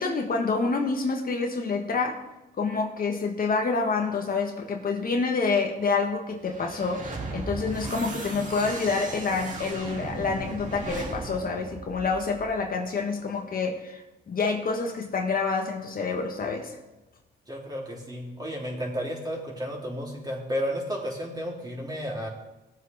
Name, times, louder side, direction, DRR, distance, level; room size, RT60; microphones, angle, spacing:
voice 1, 0.0-2.2 2.6-7.0 7.3-16.8, left 4 dB, 45° left, 2 dB, 1.5 m, -27 dB
sound 1, 6.4-12.7, right 3 dB, 40° right, 2.4 m, -37 dB
voice 2, 17.5-22.3, equal, 20° right, -3 dB, 3.4 m, -32 dB
17.5 x 7.9 x 3.6 m, 0.99 s
cardioid pair, 90°, 20 cm